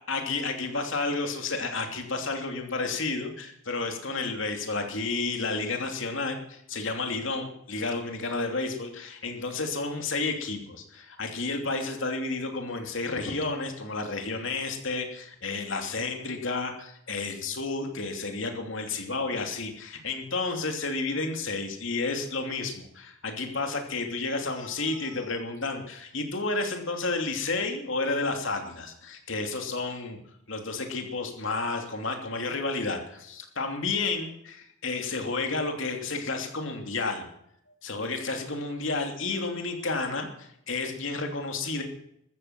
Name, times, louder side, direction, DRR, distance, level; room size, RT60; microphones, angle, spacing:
voice 1, 0.1-30.2 30.5-37.3 37.8-41.8, left 3 dB, 60° left, 4 dB, 2.9 m, -31 dB
14.5 x 13.5 x 6.1 m, 0.74 s
head